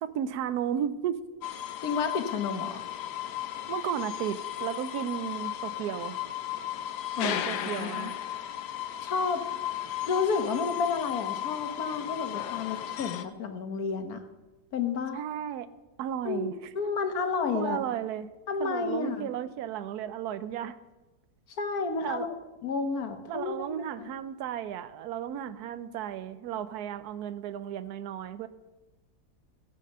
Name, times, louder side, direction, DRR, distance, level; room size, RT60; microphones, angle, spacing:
voice 1, 0.0-1.2 3.7-6.2 7.2-8.2 15.1-15.7 16.0-16.6 17.5-18.3 18.6-20.8 22.0-22.3 23.3-28.5, right 10 dB, 75° right, 14 dB, 1.2 m, -34 dB
sound 1, 1.4-13.2, left 12 dB, 80° left, 1.3 m, -35 dB
voice 2, 1.8-2.8 7.1-8.1 9.0-9.6 10.1-14.2 14.7-15.2 16.2-17.8 18.5-19.3 21.6-22.3 22.6-24.1, left 5 dB, 65° left, 7 dB, 1.6 m, -31 dB
14.5 x 7.6 x 6.7 m, 1.1 s
omnidirectional pair, 1.8 m